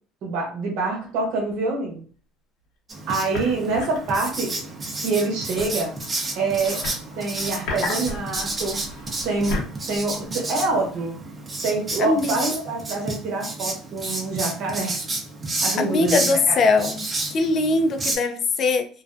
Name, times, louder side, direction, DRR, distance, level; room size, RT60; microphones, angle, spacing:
voice 1, 0.2-2.0 3.1-4.6 5.0-5.9 6.3-6.8 7.1-8.8 9.2-9.6 9.9-11.2 11.6-14.9 15.6-16.6, right 3 dB, 70° right, 0 dB, 0.9 m, -26 dB
sound 1, 1.1-1.2 1.5-1.6 3.3-4.4 5.6-7.0 7.3-10.8, left 3 dB, 75° left, 0.9 m, -33 dB
Writing, 2.9-18.2, right 2 dB, 30° right, 0.6 m, -31 dB
voice 2, 12.0-12.4 15.8-18.9, left 3 dB, 50° left, 7 dB, 0.4 m, -21 dB
2.4 x 2.2 x 2.4 m, 0.41 s
supercardioid pair, 85°, 0 cm